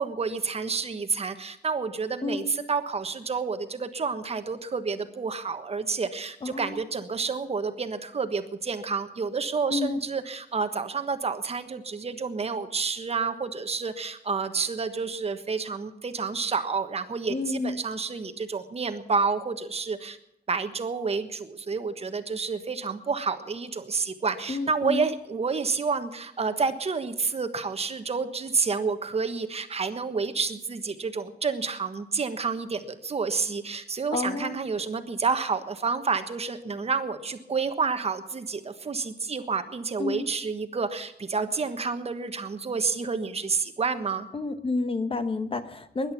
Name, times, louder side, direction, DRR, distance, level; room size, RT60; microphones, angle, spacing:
voice 1, 0.0-20.2 20.5-44.3, right 5 dB, 40° right, 9 dB, 1.3 m, -29 dB
voice 2, 2.2-2.5 6.4-6.8 9.7-10.1 17.3-17.8 24.5-25.1 34.1-34.6 40.0-40.3 44.3-46.1, left 3 dB, 35° left, 11 dB, 1.0 m, -30 dB
20.5 x 11.0 x 5.9 m, 0.87 s
wide cardioid pair, 145°, 16 cm